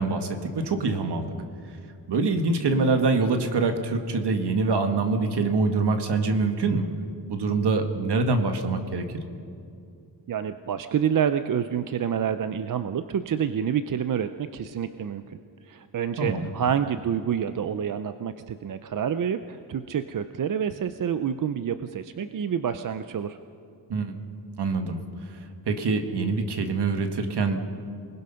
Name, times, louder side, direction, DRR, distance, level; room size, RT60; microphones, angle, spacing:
voice 1, 0.0-1.3 2.1-6.9 7.3-9.2 16.2-16.5 23.9-24.2 24.6-25.0 25.7-27.6, right 3 dB, 65° right, 6 dB, 1.8 m, -25 dB
voice 2, 10.3-15.4 15.6-23.4, right 8 dB, 50° right, 10 dB, 0.6 m, -28 dB
28.0 x 20.0 x 5.7 m, 2.5 s
wide cardioid pair, 160°, 43 cm